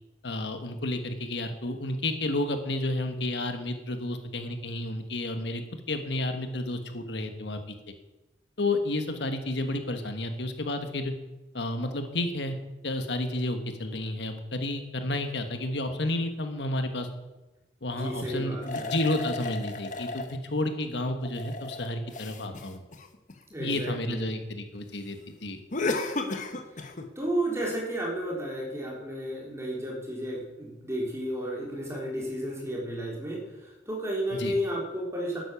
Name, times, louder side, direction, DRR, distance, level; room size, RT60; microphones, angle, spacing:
voice 1, 0.2-7.6 8.6-11.1 11.5-12.6 12.8-17.1 17.8-22.8 23.6-25.6 34.4-34.5, left 1 dB, 70° left, 7 dB, 1.4 m, -31 dB
voice 2, 18.0-18.9 23.5-24.3 26.5-26.9 27.2-35.4, right 1 dB, 15° right, -2 dB, 3.9 m, -33 dB
sound 1, 18.6-20.4 21.1-23.7 25.7-27.1, left 3 dB, 45° left, 1.2 m, -34 dB
12.0 x 9.8 x 7.0 m, 1.1 s
head